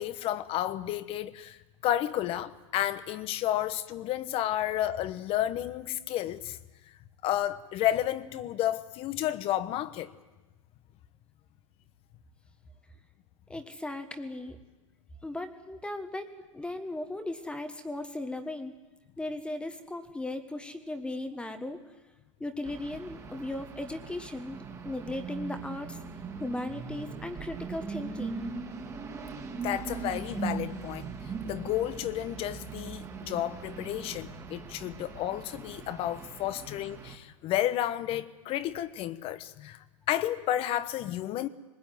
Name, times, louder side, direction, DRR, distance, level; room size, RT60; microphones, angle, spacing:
voice 1, 0.0-1.6 1.8-6.6 7.2-10.1 29.6-31.1 31.4-41.5, left 12 dB, 35° left, 1.1 m, -31 dB
voice 2, 13.5-14.6 15.2-18.7 19.2-21.8 22.4-26.0 26.4-28.4, left 2 dB, 5° left, 1.4 m, -37 dB
sound 1, 22.6-37.2, right 5 dB, 20° right, 2.1 m, -40 dB
21.5 x 20.5 x 9.3 m
hypercardioid pair, 125°, 17 cm